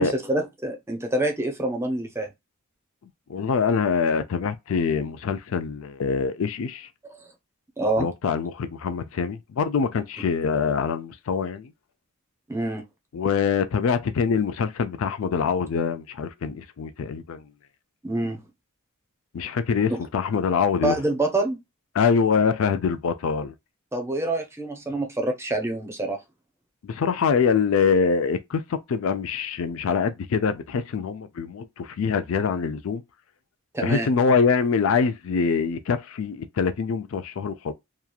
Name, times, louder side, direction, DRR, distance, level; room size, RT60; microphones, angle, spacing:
voice 1, 0.0-2.3 7.2-7.3 7.8-8.1 12.5-12.9 18.0-18.4 19.9-20.0 20.8-21.6 23.9-26.2 33.7-34.1, right 2 dB, 10° right, 0.6 m, -26 dB
voice 2, 3.3-6.9 8.0-11.7 13.1-17.4 19.3-21.0 21.9-23.5 26.8-33.0 33.8-37.7, left 5 dB, 70° left, 0.4 m, -24 dB
2.9 x 2.4 x 2.2 m
head